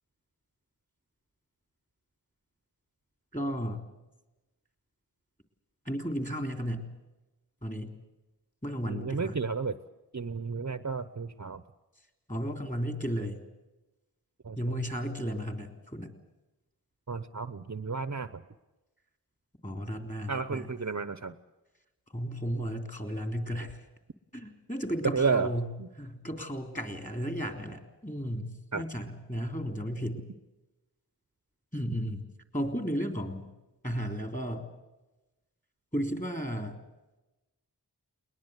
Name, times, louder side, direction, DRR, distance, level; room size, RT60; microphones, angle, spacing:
voice 1, 3.3-3.8 5.9-6.9 7.6-7.9 8.6-9.4 12.3-13.4 14.6-16.1 19.6-20.7 22.1-23.8 24.3-25.7 26.0-30.2 31.7-32.2 32.5-33.5 33.8-34.7 35.9-36.8, equal, 20° left, 6 dB, 3.5 m, -34 dB
voice 2, 8.8-9.8 10.1-11.6 14.4-14.8 17.1-18.4 20.3-21.4 25.0-25.5 25.8-25.9 28.7-28.8, right 5 dB, 40° right, 13 dB, 0.8 m, -32 dB
21.5 x 20.5 x 8.2 m, 1.0 s
wide cardioid pair, 60°, 42 cm